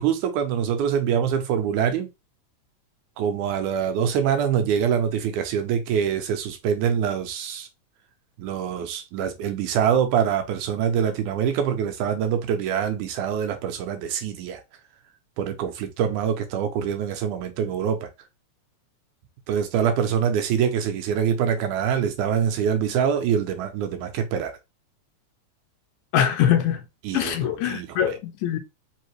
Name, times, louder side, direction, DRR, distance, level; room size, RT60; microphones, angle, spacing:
voice 1, 0.0-2.1 3.2-7.7 8.4-14.6 15.4-18.1 19.5-24.6 27.0-28.2, right 8 dB, 90° right, 2.2 m, -24 dB
voice 2, 26.1-26.8 27.1-28.6, left 10 dB, 80° left, 2.0 m, -23 dB
5.2 x 2.8 x 3.1 m
omnidirectional pair, 3.5 m